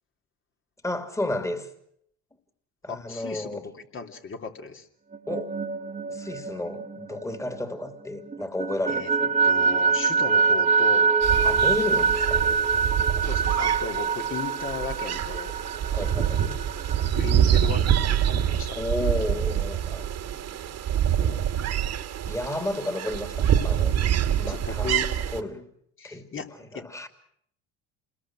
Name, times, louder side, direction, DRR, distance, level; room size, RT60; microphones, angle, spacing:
voice 1, 0.8-1.7 2.8-3.7 5.3-5.5 6.1-9.3 11.4-12.6 15.9-16.5 18.8-20.8 21.1-21.4 22.3-24.0 24.4-25.0 25.3-25.7 26.0-26.4 26.7-27.1, left 1 dB, 10° left, 7 dB, 2.9 m, -32 dB
voice 2, 2.9-4.9 8.9-9.1 9.4-11.1 13.2-15.6 17.0-18.8 24.5-25.1 26.0-26.9, left 5 dB, 35° left, 5 dB, 3.2 m, -36 dB
sound 1, 5.1-8.0 8.3-17.7, right 5 dB, 20° right, 1.9 m, -25 dB
sound 2, 11.2-25.4, right 9 dB, 50° right, 2.0 m, -26 dB
28.0 x 21.5 x 6.2 m, 0.67 s
supercardioid pair, 85°, 33 cm